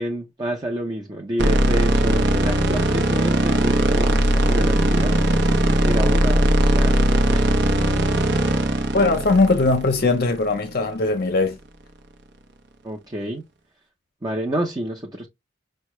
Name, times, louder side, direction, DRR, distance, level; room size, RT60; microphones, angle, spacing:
voice 1, 0.0-5.2 5.8-7.0 7.3-7.5 12.8-13.4 14.2-15.3, right 1 dB, 20° right, 0.7 m, -29 dB
sound 1, 1.4-10.6, right 1 dB, 60° right, 0.7 m, -19 dB
voice 2, 8.9-11.6, left 3 dB, 55° left, 0.6 m, -19 dB
5.6 x 2.2 x 3.0 m
head